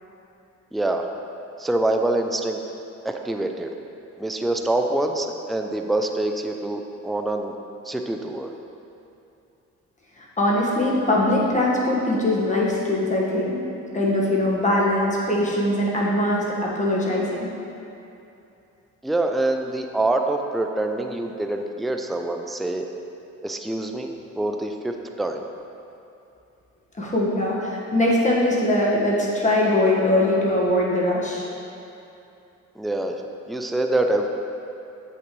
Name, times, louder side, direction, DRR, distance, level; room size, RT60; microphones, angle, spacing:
voice 1, 0.7-1.1 1.6-2.6 3.0-3.7 4.2-7.5 7.9-8.5 19.0-22.9 23.4-25.4 32.8-33.2 33.5-34.3, right 2 dB, ahead, 4 dB, 0.4 m, -25 dB
voice 2, 10.2-17.5 27.0-31.5, left 1 dB, 25° left, -4 dB, 1.4 m, -22 dB
7.7 x 5.9 x 3.1 m, 2.8 s
cardioid pair, 90°, 30 cm